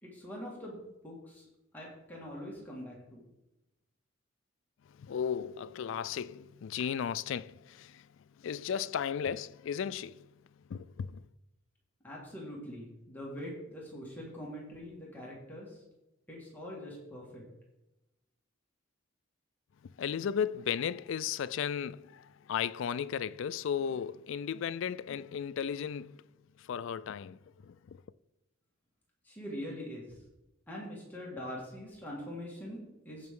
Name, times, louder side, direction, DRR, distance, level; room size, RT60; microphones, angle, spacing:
voice 1, 0.0-1.5 1.7-3.2 12.0-15.8 16.3-17.4 29.2-30.1 30.7-33.3, equal, 10° left, 1.8 m, -43 dB
voice 2, 4.9-8.1 8.4-10.3 10.7-11.3 19.8-26.3 26.6-28.0, left 8 dB, 60° left, 0.3 m, -35 dB
15.5 x 5.4 x 3.7 m
head